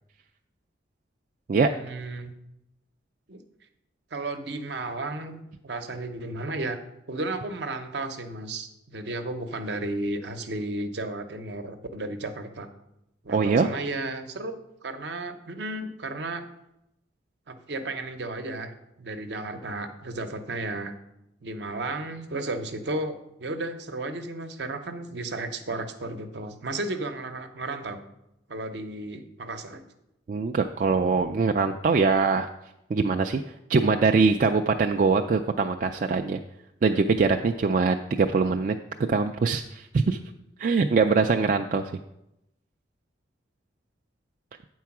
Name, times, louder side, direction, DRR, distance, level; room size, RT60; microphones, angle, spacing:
voice 1, 1.7-2.4 3.3-3.4 4.1-6.8 7.1-12.7 13.2-16.4 17.5-20.9 21.4-28.0 28.5-29.8, right 2 dB, 70° right, 8 dB, 0.8 m, -33 dB
voice 2, 13.3-13.7 30.3-32.5 32.9-33.4 33.7-36.4 36.8-38.7 39.1-40.2 40.6-41.9, right 4 dB, 45° right, 5 dB, 0.3 m, -23 dB
8.5 x 4.6 x 5.9 m, 0.86 s
head